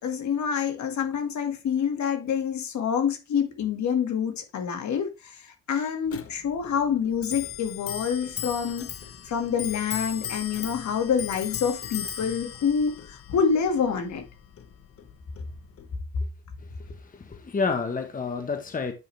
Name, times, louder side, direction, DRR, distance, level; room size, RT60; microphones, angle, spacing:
voice 1, 0.0-8.9 9.2-14.2, left 7 dB, 65° left, 2.0 m, -27 dB
Clock, 6.1-16.0, left 9 dB, 50° left, 1.1 m, -38 dB
voice 2, 16.6-18.9, left 4 dB, 25° left, 1.2 m, -30 dB
9.4 x 5.0 x 3.4 m
cardioid pair, 90°, 30 cm